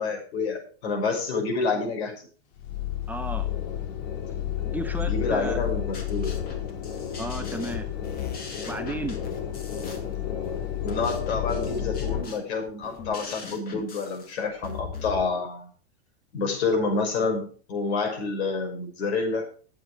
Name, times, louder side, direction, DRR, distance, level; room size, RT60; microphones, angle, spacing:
voice 1, 0.0-2.3 5.0-6.4 10.8-15.7 16.3-19.4, left 4 dB, 75° left, 2 dB, 5.9 m, -28 dB
sound 1, 2.6-12.2, left 10 dB, 50° left, 2.4 m, -31 dB
voice 2, 3.1-3.5 4.7-5.6 7.2-7.9 8.6-9.2, right 2 dB, 5° right, 5 dB, 0.9 m, -33 dB
sound 2, 5.6-15.2, left 6 dB, 25° left, 2.4 m, -40 dB
12.5 x 8.5 x 4.8 m, 0.41 s
supercardioid pair, 145°, 33 cm